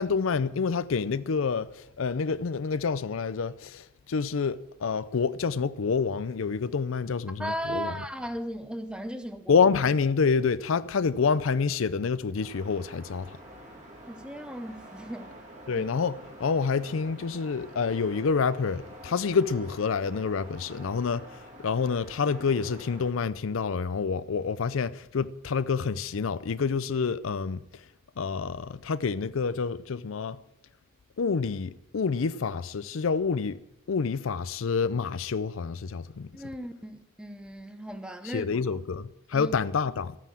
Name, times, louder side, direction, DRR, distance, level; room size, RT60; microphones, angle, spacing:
voice 1, 0.0-7.9 9.5-13.4 15.7-27.6 28.2-30.4 31.2-33.6 33.9-36.3 38.2-40.2, left 5 dB, 70° left, 0.5 m, -28 dB
voice 2, 7.4-9.7 14.1-15.3 15.7-15.8 36.3-38.8 39.3-39.5, equal, 5° right, 0.9 m, -36 dB
sound 1, 12.3-23.1, right 1 dB, 35° right, 2.7 m, -47 dB
13.5 x 9.2 x 7.5 m
head